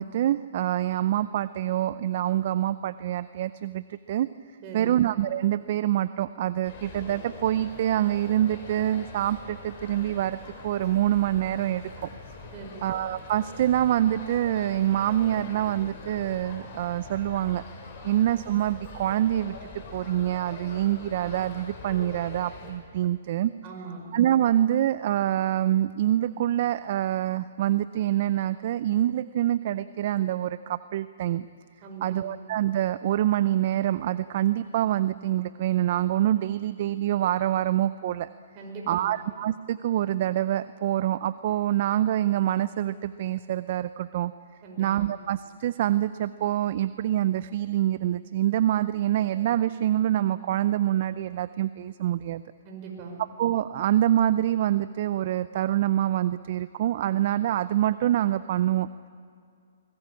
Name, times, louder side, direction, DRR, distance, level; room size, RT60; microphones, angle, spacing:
voice 1, 0.0-4.3 4.7-12.1 12.8-17.6 18.0-23.5 24.1-31.5 32.0-38.3 38.9-44.3 44.8-52.4 53.4-58.9, right 12 dB, 50° right, 15 dB, 0.5 m, -26 dB
voice 2, 4.6-5.0 12.5-12.9 18.0-18.1 23.6-24.1 31.8-32.2 38.5-39.2 44.6-45.1 52.6-53.2, right 4 dB, 35° right, 2 dB, 5.7 m, -41 dB
sound 1, 6.6-22.7, left 4 dB, 40° left, 5.7 m, -43 dB
22.0 x 20.0 x 8.6 m, 2.3 s
hypercardioid pair, 140°, 0 cm